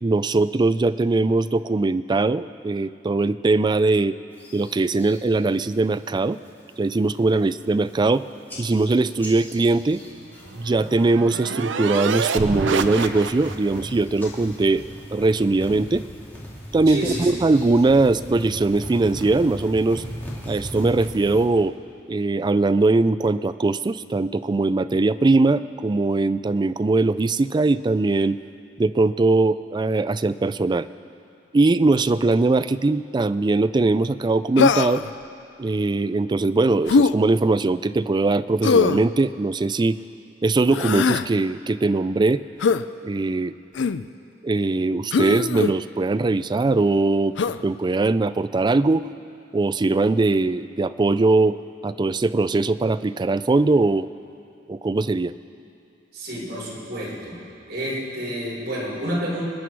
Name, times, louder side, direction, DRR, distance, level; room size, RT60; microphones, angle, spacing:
voice 1, 0.0-4.2 4.5-6.4 6.8-8.2 8.6-10.0 10.6-14.8 15.1-16.0 16.7-20.0 20.5-21.7 22.1-28.4 28.8-30.9 31.5-35.0 35.6-40.0 40.4-42.4 43.0-43.5 44.4-47.4 47.6-49.1 49.5-51.6 51.8-54.1 54.7-55.3, right 3 dB, 25° right, 14 dB, 0.3 m, -21 dB
sound 1, 4.4-5.2 5.6-6.0 6.3-6.7 7.2-7.3 7.5-8.2 8.5-11.1 11.3-11.8 12.4-21.4, equal, 10° left, 2.8 m, -38 dB
sound 2, 10.1-13.8, right 5 dB, 80° right, 0.6 m, -27 dB
voice 2, 16.9-17.3 56.1-57.4 57.7-59.5, equal, 55° right, -5 dB, 4.5 m, -29 dB
Human voice, 34.6-35.1 36.9-37.1 38.6-39.1 40.7-41.3 42.6-42.8 43.7-44.0 45.1-45.7 47.4-47.6, left 5 dB, 70° left, 0.4 m, -20 dB
26.5 x 9.9 x 4.7 m, 2.7 s
head